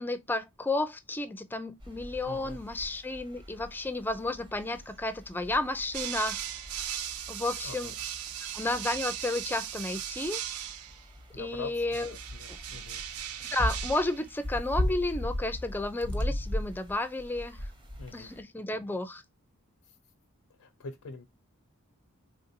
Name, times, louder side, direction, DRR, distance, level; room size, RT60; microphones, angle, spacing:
voice 1, 0.0-6.4 7.3-7.9 8.5-10.4 11.4-12.1 12.5-12.6 13.4-17.7 18.1-19.2, left 2 dB, 10° left, 0.4 m, -32 dB
sound 1, 1.8-18.4, left 1 dB, 20° right, 0.9 m, -39 dB
voice 2, 2.2-2.6 7.6-7.9 11.3-13.0 18.0-18.3 20.6-21.2, left 4 dB, 80° left, 0.5 m, -44 dB
sound 2, 5.9-11.1 11.9-14.3, right 10 dB, 85° right, 0.5 m, -38 dB
3.5 x 2.6 x 2.6 m
head